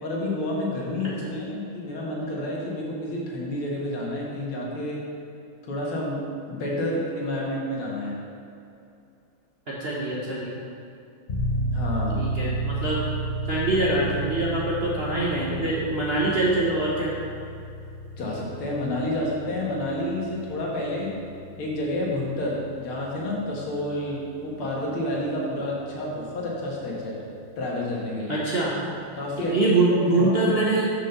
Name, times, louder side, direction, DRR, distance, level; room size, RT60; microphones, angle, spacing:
voice 1, 0.0-5.1 5.7-8.3 11.7-12.3 18.2-21.2 21.6-27.2 27.6-28.4 29.1-29.8 30.1-30.4, left 1 dB, 80° left, -3 dB, 2.4 m, -29 dB
voice 2, 9.7-10.5 12.1-13.0 13.5-17.2 28.3-28.7 29.5-30.9, right 2 dB, 45° right, -6 dB, 0.8 m, -24 dB
sound 1, 11.3-25.7, right 1 dB, 40° left, 0.8 m, -33 dB
6.4 x 5.4 x 6.6 m, 2.6 s
omnidirectional pair, 2.3 m